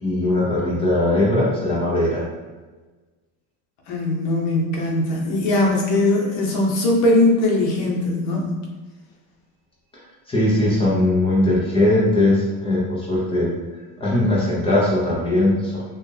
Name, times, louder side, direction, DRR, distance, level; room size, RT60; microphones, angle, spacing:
voice 1, 0.0-2.3 10.3-13.5 14.0-15.8, left 1 dB, 15° left, -5 dB, 0.6 m, -19 dB
voice 2, 3.9-8.6, left 2 dB, 60° left, 0 dB, 1.0 m, -20 dB
4.3 x 2.5 x 3.2 m, 1.3 s
cardioid pair, 165°, 43 cm